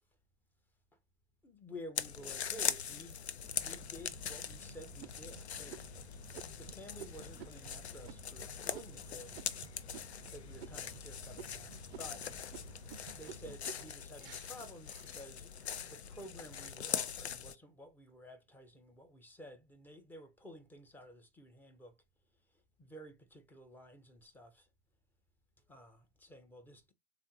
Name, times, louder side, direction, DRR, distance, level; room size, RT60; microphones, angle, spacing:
voice 1, 1.4-3.2 3.6-9.6 10.3-12.3 12.6-12.7 13.1-22.0 22.5-24.7 25.7-26.9, equal, 5° left, 0.4 m, -52 dB
sound 1, 2.0-17.6, left 8 dB, 80° left, 0.5 m, -42 dB
sound 2, 2.2-3.0 3.6-3.7 4.2-4.5 5.0-10.3 10.6-11.1 11.4-15.7 16.2-16.7, right 9 dB, 60° right, 0.4 m, -54 dB
sound 3, 3.4-13.6, equal, 25° left, 0.8 m, -54 dB
3.6 x 2.5 x 3.9 m
figure-of-eight pair, 95°, 33 cm